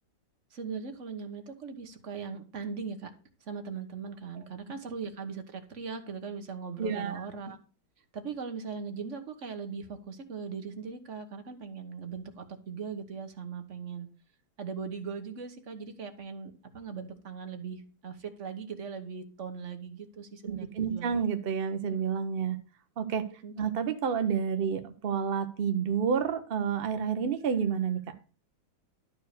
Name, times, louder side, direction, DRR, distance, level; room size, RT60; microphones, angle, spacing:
voice 1, 0.5-3.1 3.4-7.6 8.1-14.1 14.6-21.2 23.4-23.5, right 5 dB, 40° right, 6 dB, 1.4 m, -39 dB
voice 2, 6.8-7.2 20.4-22.6 23.0-23.2 23.6-28.0, right 7 dB, 70° right, 8 dB, 0.5 m, -29 dB
12.0 x 4.7 x 6.6 m, 0.37 s
omnidirectional pair, 2.2 m